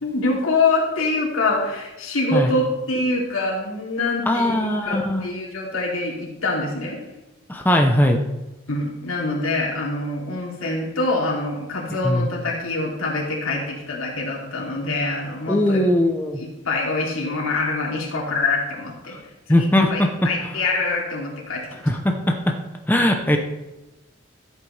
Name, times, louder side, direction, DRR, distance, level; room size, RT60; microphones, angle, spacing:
voice 1, 0.0-4.6 4.8-7.0 8.7-15.8 16.4-19.2 19.5-21.8, left 2 dB, 90° left, -3 dB, 2.9 m, -25 dB
voice 2, 4.3-5.2 7.5-8.2 12.0-12.3 15.5-16.4 19.5-20.1 21.9-22.5 22.9-23.4, left 1 dB, 10° left, 3 dB, 0.7 m, -19 dB
13.0 x 8.1 x 3.3 m, 1.0 s
head